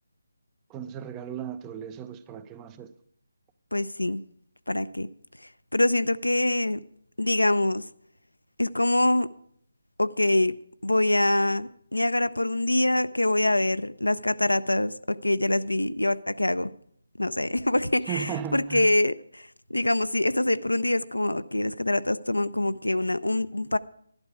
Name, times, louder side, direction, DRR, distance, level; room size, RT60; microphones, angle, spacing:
voice 1, 0.7-2.9 18.1-18.9, right 8 dB, 15° right, 0.5 m, -36 dB
voice 2, 3.7-4.2 4.7-5.1 5.7-6.8 7.2-7.8 8.6-9.3 10.0-10.6 10.8-16.7 17.2-23.8, left 1 dB, 80° left, 0.5 m, -25 dB
12.0 x 11.5 x 4.8 m
figure-of-eight pair, 150°, 0 cm